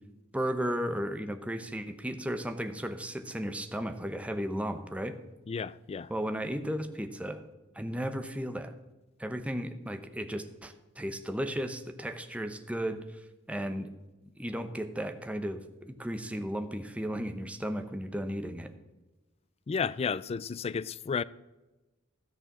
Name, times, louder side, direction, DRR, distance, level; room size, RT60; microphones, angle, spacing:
voice 1, 0.3-5.2 6.1-7.4 7.7-8.7 9.2-13.2 13.5-13.9 14.4-18.7, equal, 5° right, 0.8 m, -34 dB
voice 2, 5.5-6.1 19.7-21.2, left 5 dB, 30° left, 0.3 m, -32 dB
13.5 x 6.5 x 6.0 m
head